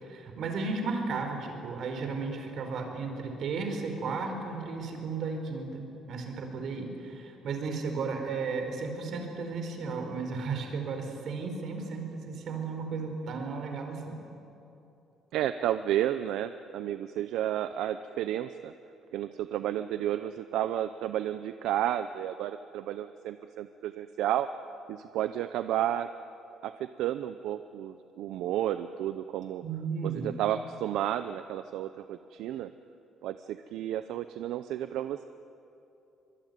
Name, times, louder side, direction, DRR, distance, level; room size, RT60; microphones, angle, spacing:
voice 1, 0.0-14.2 29.6-30.3, right 4 dB, 55° right, 4 dB, 4.7 m, -34 dB
voice 2, 15.3-18.7 19.1-24.5 24.9-26.1 26.6-29.6 30.0-32.7 33.2-35.3, right 12 dB, 80° right, 11 dB, 0.7 m, -32 dB
24.5 x 22.5 x 9.4 m, 2.9 s
cardioid pair, 130°, 0 cm